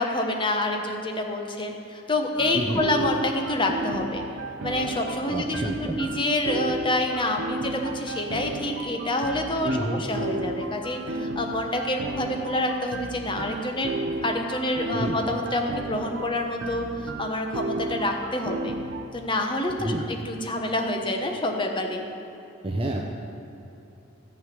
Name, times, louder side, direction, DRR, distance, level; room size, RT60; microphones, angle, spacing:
voice 1, 0.0-4.2 4.6-13.9 14.2-18.8 19.1-22.1, left 1 dB, 25° left, 2 dB, 1.1 m, -27 dB
sound 1, 2.4-19.0, right 2 dB, 60° right, 0.7 m, -34 dB
voice 2, 2.5-2.8 5.3-6.0 9.6-10.0 14.9-15.2 19.8-20.1 22.6-23.0, right 1 dB, 25° right, 0 dB, 0.7 m, -28 dB
14.5 x 4.9 x 9.0 m, 3.0 s
head